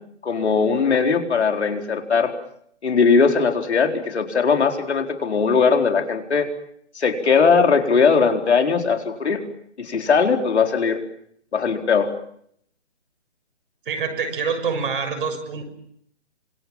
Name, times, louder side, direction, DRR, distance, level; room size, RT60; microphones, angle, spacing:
voice 1, 0.2-2.3 2.8-6.5 6.9-9.4 9.8-11.0 11.5-12.1, left 5 dB, 70° left, 4 dB, 4.4 m, -19 dB
voice 2, 13.8-15.7, right 5 dB, 50° right, 6 dB, 6.6 m, -26 dB
26.5 x 25.5 x 7.3 m, 0.69 s
hypercardioid pair, 160°, 35 cm